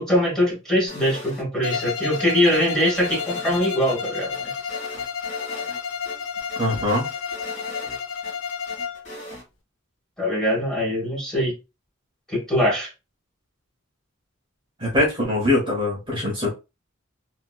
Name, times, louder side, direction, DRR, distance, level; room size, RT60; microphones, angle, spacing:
voice 1, 0.0-4.4 10.2-11.5 12.3-12.9, equal, 5° left, 1.4 m, -22 dB
sound 1, 0.9-1.8 2.1-4.0 4.3-5.8 6.0-6.2 6.5-8.3 8.7-9.4, equal, 40° left, 1.7 m, -40 dB
Bowed string instrument, 1.6-9.1, left 6 dB, 65° left, 0.6 m, -31 dB
voice 2, 6.5-7.1 14.8-16.5, left 1 dB, 25° right, 1.0 m, -22 dB
2.9 x 2.9 x 2.3 m
head